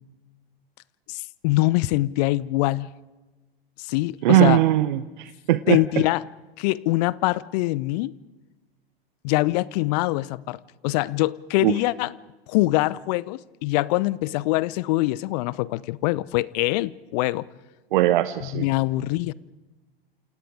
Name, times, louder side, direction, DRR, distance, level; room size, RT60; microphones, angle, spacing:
voice 1, 1.1-2.9 3.8-4.6 5.7-6.3 6.6-8.1 9.2-12.2 12.5-17.5 18.4-19.3, left 19 dB, 40° left, 0.8 m, -24 dB
voice 2, 4.2-5.8 11.6-11.7 17.9-18.6, right 15 dB, 55° right, 1.0 m, -20 dB
28.5 x 28.5 x 5.0 m
figure-of-eight pair, 90°, 30 cm